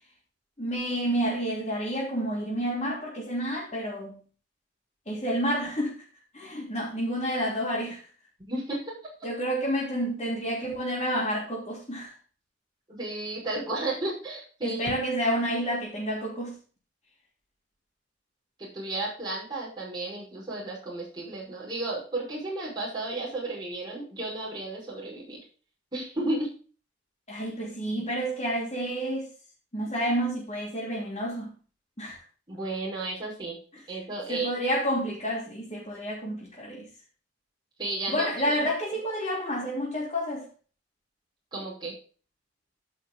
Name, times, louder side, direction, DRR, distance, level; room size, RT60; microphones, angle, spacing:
voice 1, 0.6-4.2 5.1-6.0 6.3-8.0 9.2-12.1 14.6-16.6 27.3-29.3 29.7-31.5 32.0-32.2 34.3-36.9 38.1-40.5, equal, 30° left, 3.2 m, -29 dB
voice 2, 8.5-9.1 12.9-14.9 18.6-25.4 25.9-26.5 32.5-33.6 33.9-34.5 37.8-38.6 41.5-41.9, right 2 dB, 20° right, 5.3 m, -33 dB
14.0 x 5.7 x 3.8 m
head